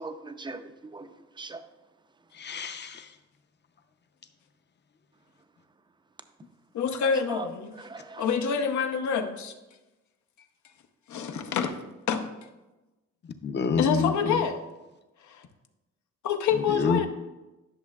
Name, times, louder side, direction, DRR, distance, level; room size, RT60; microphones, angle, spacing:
voice 1, 0.0-1.6 7.0-8.3, right 3 dB, 15° right, 0.5 m, -40 dB
voice 2, 2.3-3.1 13.4-14.4 16.5-17.0, left 5 dB, 35° left, 0.7 m, -28 dB
voice 3, 6.7-7.7 8.2-9.5 11.1-11.8 12.1-12.3 13.8-14.6 15.3-15.4 16.2-17.1, left 6 dB, 70° left, 0.8 m, -27 dB
11.0 x 6.3 x 2.4 m
cardioid pair, 90°, 30 cm